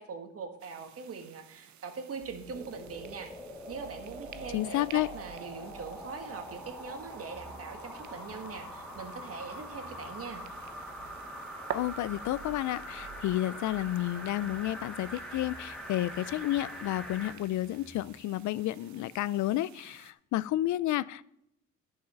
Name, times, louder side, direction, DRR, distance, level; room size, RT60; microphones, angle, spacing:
voice 1, 0.0-3.3 3.7-10.4, right 5 dB, 50° right, 6 dB, 1.7 m, -42 dB
sound 1, 0.6-20.1, right 10 dB, 70° right, 0.7 m, -51 dB
sound 2, 2.2-18.2, right 5 dB, 30° right, 3.4 m, -55 dB
sound 3, 2.4-17.4 17.8-17.9, equal, ahead, 2.5 m, -44 dB
voice 2, 4.5-5.1 11.7-21.3, left 15 dB, 70° left, 19 dB, 0.5 m, -31 dB
11.0 x 5.6 x 5.9 m, 0.75 s
cardioid pair, 90°, 30 cm